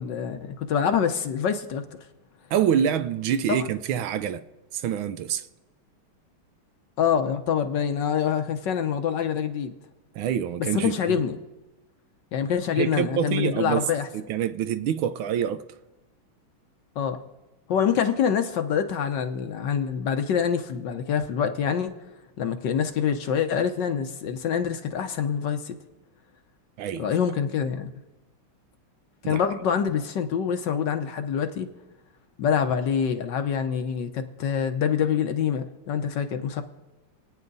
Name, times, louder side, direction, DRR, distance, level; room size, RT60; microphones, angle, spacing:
voice 1, 0.0-1.9 7.0-9.7 10.7-11.4 12.3-14.1 17.0-17.2 17.7-21.9 22.4-25.8 27.0-27.9 29.2-31.7 32.4-36.6, left 7 dB, 65° left, 1.4 m, -25 dB
voice 2, 2.5-4.4 4.7-5.5 10.1-11.2 12.8-13.9 14.1-15.6 26.8-27.1 29.2-29.4, right 9 dB, 75° right, 1.4 m, -26 dB
27.5 x 9.3 x 4.0 m
omnidirectional pair, 2.4 m